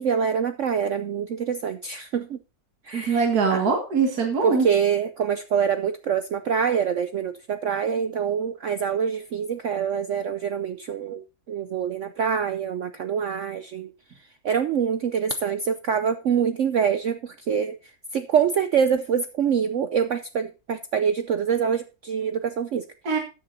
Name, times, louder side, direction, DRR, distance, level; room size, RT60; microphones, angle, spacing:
voice 1, 0.0-2.4 2.8-3.6 4.4-13.9 14.4-22.9, right 7 dB, 75° right, 0.7 m, -25 dB
voice 2, 2.9-4.7 23.0-23.2, right 5 dB, 55° right, 2.3 m, -22 dB
13.5 x 9.7 x 2.6 m
omnidirectional pair, 2.0 m